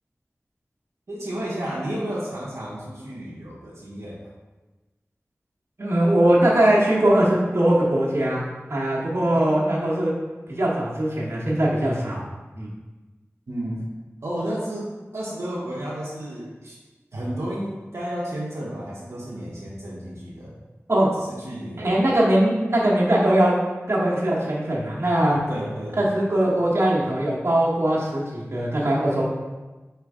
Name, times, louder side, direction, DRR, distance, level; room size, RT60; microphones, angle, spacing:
voice 1, 1.1-4.2 9.3-9.6 13.5-13.9 14.2-16.8 17.1-20.5 21.2-22.0 25.5-26.0, right 1 dB, 85° right, -7 dB, 0.9 m, -32 dB
voice 2, 5.8-8.4 8.7-10.1 10.5-12.2 12.5-12.7 20.9-21.1 21.8-23.6 23.9-25.4 26.0-29.2, right 1 dB, 60° right, -5 dB, 1.1 m, -21 dB
4.5 x 3.2 x 3.6 m, 1.2 s
wide cardioid pair, 55°, 5 cm